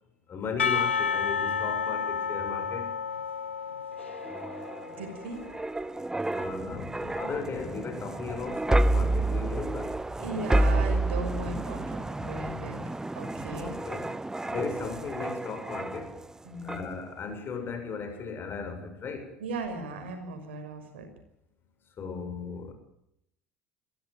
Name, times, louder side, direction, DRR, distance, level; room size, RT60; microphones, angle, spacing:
voice 1, 0.3-2.9 6.3-10.0 13.5-14.1 14.5-16.2 16.6-19.3 22.0-22.7, left 5 dB, 40° left, 6 dB, 7.2 m, -37 dB
Percussion / Church bell, 0.6-5.4, left 6 dB, 90° left, 0.9 m, -31 dB
sound 1, 4.0-16.3 16.7-16.9, right 2 dB, 10° right, 0.8 m, -30 dB
voice 2, 4.9-5.4 10.2-12.8 13.1-13.8 16.4-16.9 19.4-21.1, right 2 dB, 75° right, 6 dB, 5.9 m, -37 dB
23.0 x 16.5 x 9.2 m, 0.77 s
hypercardioid pair, 70°, 6 cm